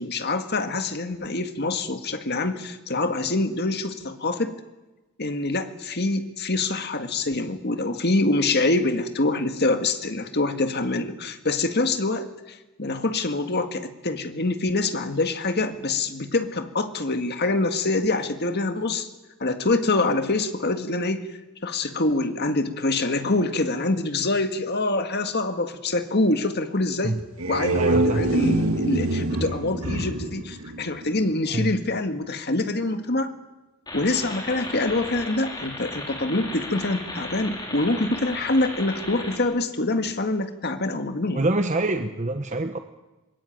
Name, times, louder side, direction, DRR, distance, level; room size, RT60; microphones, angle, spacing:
voice 1, 0.0-4.5 5.2-19.1 19.4-21.3 21.6-27.2 27.5-33.3 33.9-41.4, left 2 dB, 50° left, 8 dB, 1.9 m, -25 dB
sound 1, 27.2-31.4, right 2 dB, 85° right, 2.0 m, -25 dB
voice 2, 27.7-28.3 31.5-31.7 41.3-42.8, right 2 dB, 35° right, 7 dB, 1.0 m, -25 dB
sound 2, 33.9-39.4, left 1 dB, 20° left, 4.9 m, -36 dB
24.0 x 20.5 x 9.2 m, 1.1 s
head